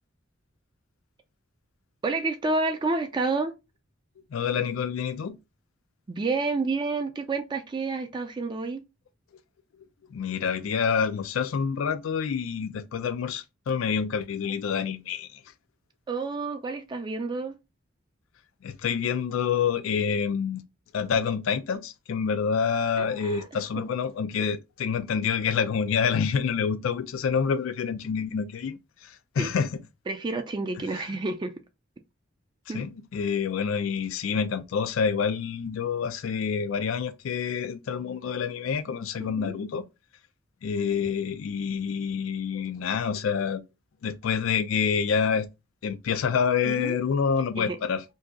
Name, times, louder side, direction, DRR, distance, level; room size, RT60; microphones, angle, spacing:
voice 1, 2.0-3.5 6.1-8.8 16.1-17.6 23.0-23.5 29.4-29.5 30.1-31.5 32.7-32.8 39.2-39.5 46.6-47.0 47.6-47.8, right 3 dB, 25° right, 0.3 m, -29 dB
voice 2, 4.3-5.4 10.1-15.4 18.6-20.6 20.9-29.8 32.7-39.8 40.6-43.6 44.0-45.5 45.8-48.0, left 6 dB, 80° left, 0.4 m, -27 dB
2.7 x 2.3 x 3.6 m
head